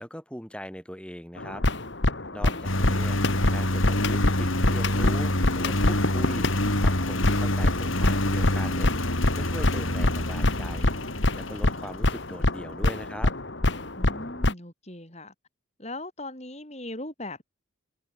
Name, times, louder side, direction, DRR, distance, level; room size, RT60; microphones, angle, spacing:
voice 1, 0.0-1.6 2.3-3.2 3.5-6.5 6.8-8.9 9.3-11.1 11.4-13.3, equal, 5° left, 7.9 m, -40 dB
sound 1, 1.4-14.5, left 2 dB, 60° left, 1.8 m, -26 dB
Engine, 2.6-12.1, left 1 dB, 75° left, 4.4 m, -27 dB
voice 2, 13.9-15.3 15.8-17.4, left 1 dB, 30° left, 5.9 m, -39 dB
head